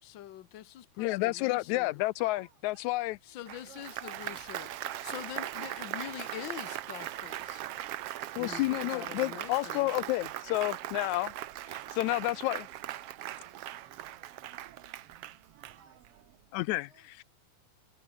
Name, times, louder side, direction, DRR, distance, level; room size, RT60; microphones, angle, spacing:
voice 1, 0.0-2.0 3.2-4.8 5.0-7.6 8.4-9.9, left 12 dB, 60° left, 1.3 m, -44 dB
voice 2, 1.0-3.2 8.4-11.3 11.9-12.7 16.5-16.9, left 19 dB, 80° left, 1.9 m, -30 dB
voice 3, 2.2-5.2 15.7-16.1 16.8-17.3, right 3 dB, 85° right, 8.8 m, -66 dB
Applause, 3.5-16.2, right 13 dB, 65° right, 1.7 m, -40 dB
omnidirectional pair, 3.4 m